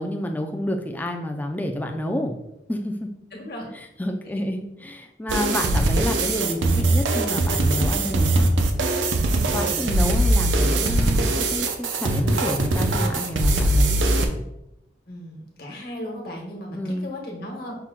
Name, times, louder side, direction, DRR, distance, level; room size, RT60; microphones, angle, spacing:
voice 1, 0.0-2.3 2.7-3.1 3.7-8.5 9.3-14.0 16.7-17.1, left 1 dB, 10° left, 3 dB, 0.3 m, -29 dB
voice 2, 3.3-3.7 9.5-9.9 15.1-17.8, left 1 dB, 55° left, -1 dB, 1.2 m, -36 dB
sound 1, 5.3-14.3, right 2 dB, 85° right, 0.5 m, -21 dB
5.8 x 2.2 x 3.6 m, 0.85 s
head